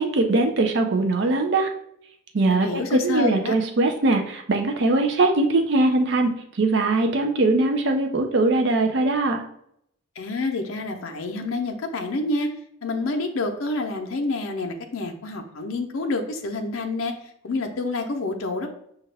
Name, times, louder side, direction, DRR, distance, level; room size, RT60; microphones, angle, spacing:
voice 1, 0.0-1.7 2.3-9.4, right 2 dB, 55° right, 4 dB, 0.5 m, -21 dB
voice 2, 2.5-3.5 10.2-12.5 12.8-17.2 17.4-18.7, left 2 dB, 85° left, 4 dB, 0.6 m, -28 dB
5.6 x 2.3 x 3.3 m, 0.72 s
head